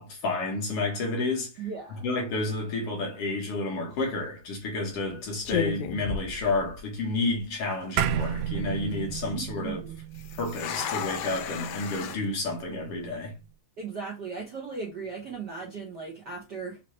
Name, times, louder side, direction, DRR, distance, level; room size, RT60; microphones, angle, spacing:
voice 1, 0.0-1.5 2.0-9.8 10.4-13.3, left 2 dB, 60° left, 2.0 m, -30 dB
voice 2, 1.6-2.0 9.3-10.0 13.8-16.8, right 5 dB, 50° right, 1.3 m, -37 dB
sound 1, 3.9-4.2 4.9-5.1 5.4-7.0 7.3-7.4 8.0-8.4 10.1-12.2, left 8 dB, 85° left, 2.2 m, -34 dB
sound 2, 8.0-12.6, right 9 dB, 80° right, 1.9 m, -32 dB
5.6 x 3.0 x 3.1 m
omnidirectional pair, 3.3 m